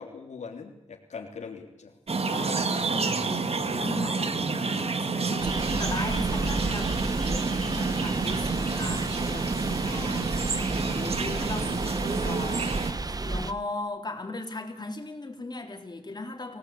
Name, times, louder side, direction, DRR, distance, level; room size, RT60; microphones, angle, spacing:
voice 1, 0.0-1.9 5.2-5.3, left 5 dB, 90° left, 1 dB, 3.3 m, -41 dB
voice 2, 2.1-12.7 13.3-16.6, left 2 dB, 35° left, 2 dB, 4.1 m, -38 dB
sound 1, 2.1-12.9, right 4 dB, 60° right, 2.1 m, -29 dB
sound 2, 5.4-13.5, right 2 dB, 35° right, 1.3 m, -32 dB
26.0 x 17.0 x 8.7 m, 0.88 s
wide cardioid pair, 75°, 12 cm